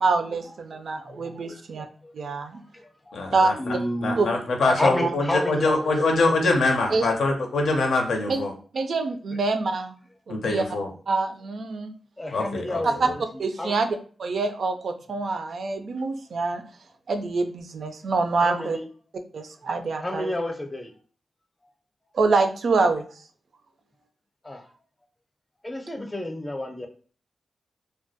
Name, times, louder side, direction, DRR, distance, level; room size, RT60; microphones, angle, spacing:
voice 1, 0.0-1.9 2.1-2.6 3.3-3.5 4.2-4.3 4.7-4.8 6.9-7.1 8.3-8.4 8.7-9.9 10.3-10.6 11.1-11.9 13.0-13.1 13.4-16.6 17.1-18.8 19.3-20.3 22.1-23.1, right 3 dB, 70° right, 6 dB, 0.3 m, -25 dB
voice 2, 1.1-1.6 2.0-2.1 2.7-3.1 3.6-4.3 4.8-5.9 12.2-12.9 13.6-13.8 18.4-18.9 20.0-20.9 24.4-24.6 25.6-26.9, left 1 dB, 20° left, 3 dB, 0.5 m, -30 dB
voice 3, 3.1-3.7 4.0-8.5 10.3-10.9 12.3-13.1, left 3 dB, 80° left, 2 dB, 0.5 m, -24 dB
2.2 x 2.0 x 2.7 m, 0.42 s
cardioid pair, 55°, 0 cm